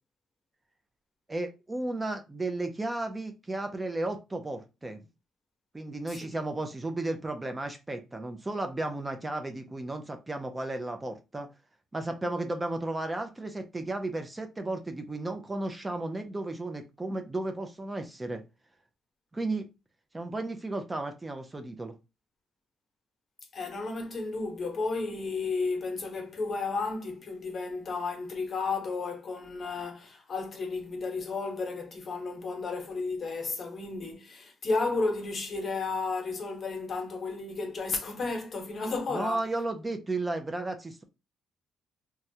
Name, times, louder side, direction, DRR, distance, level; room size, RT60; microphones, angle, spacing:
voice 1, 1.3-5.0 5.7-11.5 11.9-18.4 19.3-19.7 20.1-21.9 39.1-41.0, right 2 dB, 20° right, 0.5 m, -34 dB
voice 2, 23.5-39.4, left 3 dB, 45° left, 1.0 m, -33 dB
3.2 x 2.3 x 2.7 m
cardioid pair, 90°, 0 cm